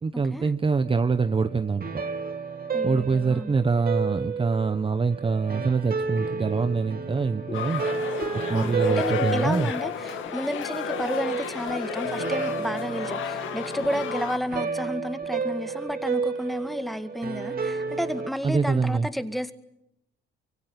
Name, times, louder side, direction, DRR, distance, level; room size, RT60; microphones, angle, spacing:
voice 1, 0.0-1.9 2.8-7.8 8.3-9.7 18.4-19.1, right 4 dB, 25° right, 10 dB, 1.0 m, -25 dB
sound 1, 0.9-18.3, right 4 dB, 50° right, 2.8 m, -32 dB
voice 2, 2.7-3.5 8.5-19.5, equal, ahead, 9 dB, 2.0 m, -31 dB
sound 2, 7.5-14.4, left 8 dB, 80° left, 2.5 m, -32 dB
sound 3, 7.5-7.7 8.2-8.5 8.9-9.1 9.6-9.8 10.2-10.4 11.0-11.2 11.7-11.8 12.3-12.5 13.1-13.3 13.8-14.0 14.5-14.7 15.0-15.4 15.9-16.0 16.6-16.7, left 5 dB, 40° left, 4.6 m, -44 dB
25.0 x 24.5 x 9.0 m, 0.84 s
cardioid pair, 90°, 20 cm